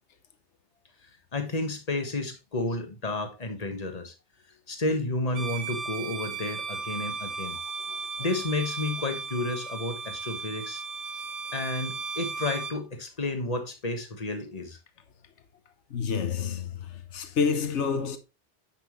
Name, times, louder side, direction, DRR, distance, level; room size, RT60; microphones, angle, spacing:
voice 1, 1.0-4.1 4.7-7.6 8.2-10.8 11.5-14.8, left 2 dB, 35° left, 1.5 m, -31 dB
Bowed string instrument, 5.3-12.8, right 4 dB, 90° right, 1.4 m, -35 dB
voice 2, 15.9-16.9 17.1-18.2, left 6 dB, 80° left, 1.3 m, -28 dB
9.7 x 6.0 x 3.1 m
omnidirectional pair, 1.2 m